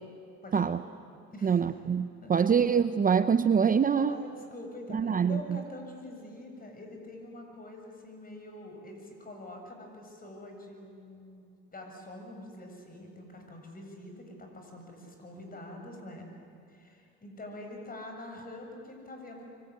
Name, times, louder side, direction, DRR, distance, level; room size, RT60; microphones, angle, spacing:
voice 1, 0.4-0.8 1.3-1.6 2.2-2.3 3.9-16.2 16.7-19.5, left 1 dB, 30° left, 3 dB, 7.6 m, -45 dB
voice 2, 1.4-4.2 4.9-5.6, right 7 dB, 30° right, 11 dB, 0.8 m, -25 dB
25.0 x 24.5 x 9.8 m, 2.3 s
supercardioid pair, 90°, 29 cm